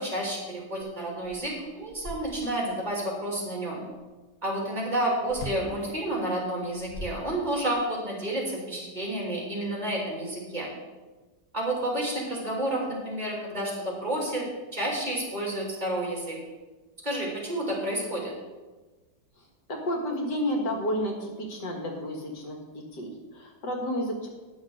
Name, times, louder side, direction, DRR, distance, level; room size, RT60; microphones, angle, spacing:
voice 1, 0.0-3.8 4.4-10.7 11.5-14.5 14.7-16.4 17.0-18.3, right 1 dB, 25° right, -3 dB, 3.0 m, -30 dB
sound 1, 0.8-0.9 1.2-2.7 5.3-5.7 6.6-7.8, left 1 dB, 35° left, 1.1 m, -41 dB
voice 2, 19.7-24.3, equal, 80° left, 1 dB, 2.3 m, -31 dB
10.5 x 6.2 x 6.4 m, 1.2 s
omnidirectional pair, 1.8 m